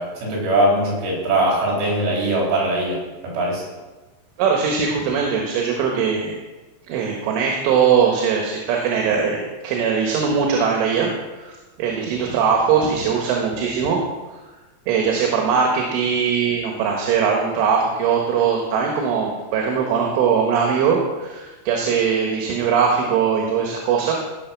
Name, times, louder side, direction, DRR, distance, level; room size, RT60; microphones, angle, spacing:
voice 1, 0.0-3.0 3.3-3.6, right 1 dB, 60° right, -3 dB, 6.1 m, -21 dB
voice 2, 4.4-6.4 6.9-11.5 11.8-14.0 14.9-24.1, right 6 dB, 75° right, 0 dB, 3.8 m, -20 dB
17.0 x 6.8 x 5.9 m, 1.2 s
omnidirectional pair, 5.8 m